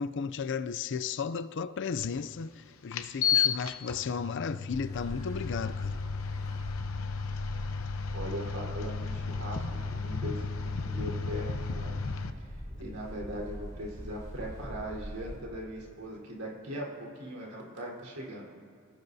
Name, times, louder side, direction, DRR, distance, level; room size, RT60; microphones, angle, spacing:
voice 1, 0.0-6.0, left 6 dB, 55° left, 0.4 m, -34 dB
sound 1, 2.0-2.1 2.9-12.3, left 6 dB, 70° left, 0.8 m, -33 dB
sound 2, 4.7-15.4, equal, 20° left, 5.0 m, -42 dB
voice 2, 8.1-18.5, equal, 85° right, 4.1 m, -40 dB
28.0 x 15.5 x 2.7 m
head